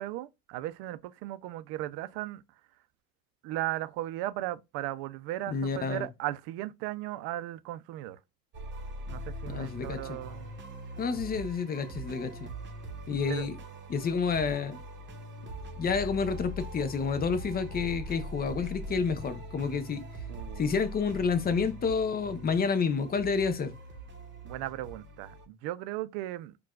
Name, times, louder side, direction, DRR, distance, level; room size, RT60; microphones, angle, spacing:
voice 1, 0.0-2.4 3.4-8.2 9.1-10.5 13.3-13.5 20.3-20.8 24.4-26.6, right 15 dB, 75° right, 0.5 m, -36 dB
voice 2, 5.5-6.1 9.5-10.2 11.0-12.5 13.1-13.5 13.9-14.8 15.8-20.0 20.6-23.7, left 5 dB, 25° left, 0.5 m, -29 dB
sound 1, 8.5-25.5, right 1 dB, 30° right, 0.9 m, -42 dB
4.5 x 2.3 x 2.3 m
cardioid pair, 125°, 40 cm